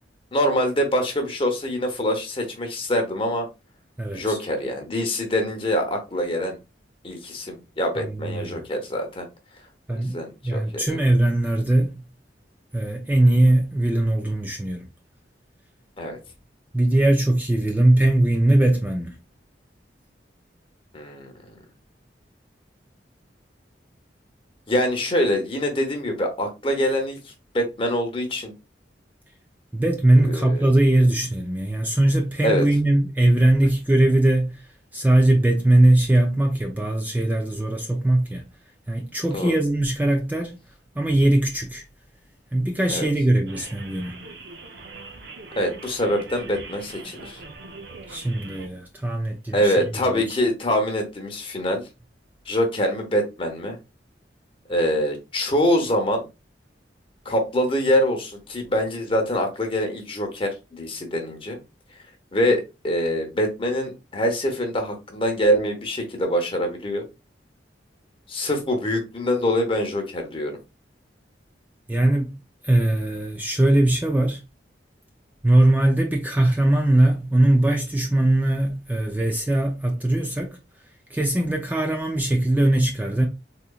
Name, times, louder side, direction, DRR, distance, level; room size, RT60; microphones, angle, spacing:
voice 1, 0.3-3.5 4.1-6.6 7.0-9.3 10.1-11.0 16.0-16.2 20.9-21.5 24.7-28.5 30.3-30.6 32.4-32.6 39.3-39.5 42.9-43.1 45.6-47.4 49.5-51.8 52.5-53.8 54.7-56.2 57.2-61.6 62.3-67.0 68.3-70.5, equal, 30° left, 0.8 m, -24 dB
voice 2, 4.0-4.4 8.0-8.6 9.9-12.0 12.7-14.9 16.7-19.1 29.7-34.6 34.9-38.5 38.9-40.6 41.0-41.8 42.5-44.2 48.1-50.4 71.9-72.4 72.6-74.4 75.4-80.6 81.1-83.3, right 1 dB, 10° right, 0.4 m, -20 dB
sound 1, 43.5-48.7, right 3 dB, 65° right, 0.7 m, -41 dB
3.9 x 3.0 x 2.3 m
head